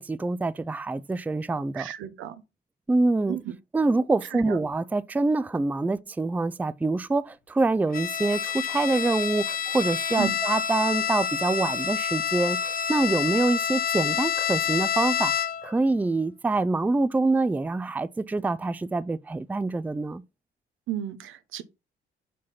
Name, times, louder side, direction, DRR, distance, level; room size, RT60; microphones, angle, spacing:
voice 1, 0.0-1.9 2.9-3.4 3.7-15.3 15.6-20.2, right 3 dB, 10° right, 0.4 m, -25 dB
voice 2, 1.7-2.4 3.3-3.4 4.3-4.6 10.2-10.4 20.9-21.6, right 11 dB, 85° right, 0.9 m, -33 dB
Bowed string instrument, 7.9-15.8, left 8 dB, 45° left, 0.8 m, -28 dB
5.1 x 4.2 x 5.6 m
cardioid pair, 90°, 20 cm